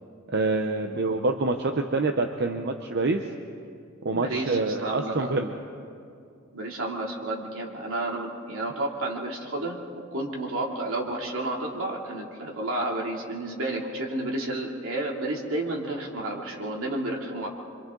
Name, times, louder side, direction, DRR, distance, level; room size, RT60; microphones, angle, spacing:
voice 1, 0.3-3.2 4.0-5.6, right 3 dB, 55° right, 5 dB, 0.8 m, -26 dB
voice 2, 4.1-5.4 6.5-9.8 10.1-17.5, right 2 dB, 80° right, -1 dB, 2.9 m, -31 dB
27.0 x 25.0 x 3.9 m, 2.4 s
head